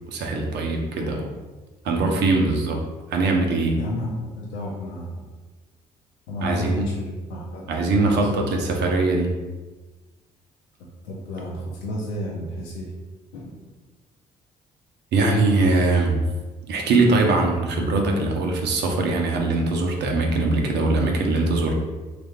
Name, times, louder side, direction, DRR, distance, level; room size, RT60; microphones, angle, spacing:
voice 1, 0.1-1.3 1.8-2.8 3.1-3.8 6.4-6.9 7.7-9.3 15.1-16.3 16.7-21.7, right 2 dB, 55° right, 1 dB, 0.7 m, -21 dB
voice 2, 3.8-5.3 6.3-8.3 11.0-12.9 13.3-13.6, left 1 dB, 70° left, -4 dB, 0.6 m, -32 dB
3.1 x 2.4 x 3.6 m, 1.3 s
hypercardioid pair, 50°, 21 cm